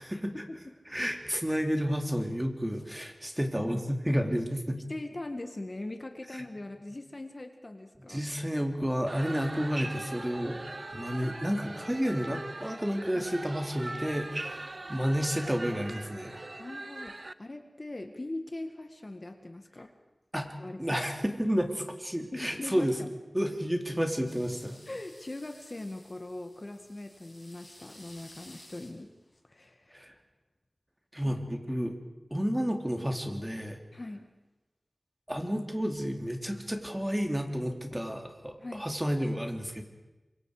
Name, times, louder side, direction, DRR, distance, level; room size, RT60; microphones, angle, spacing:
voice 1, 0.0-0.3 0.9-4.8 8.1-10.6 10.9-16.4 20.3-23.0 23.3-24.8 29.9-30.1 31.1-31.9 32.3-33.8 35.3-39.8, equal, 10° right, 4 dB, 2.8 m, -31 dB
voice 2, 4.9-8.2 9.4-9.7 13.1-13.3 16.6-19.9 20.6-21.0 22.3-23.1 24.9-29.1 29.4-30.0 31.2-31.3 33.9-34.2 38.6-38.9, left 2 dB, 40° left, 6 dB, 1.7 m, -41 dB
sound 1, 9.1-17.3, right 2 dB, 45° right, 0.7 m, -41 dB
sound 2, 24.2-29.4, left 1 dB, 25° left, 5.4 m, -55 dB
26.0 x 23.5 x 5.0 m, 1.1 s
wide cardioid pair, 55°, 0 cm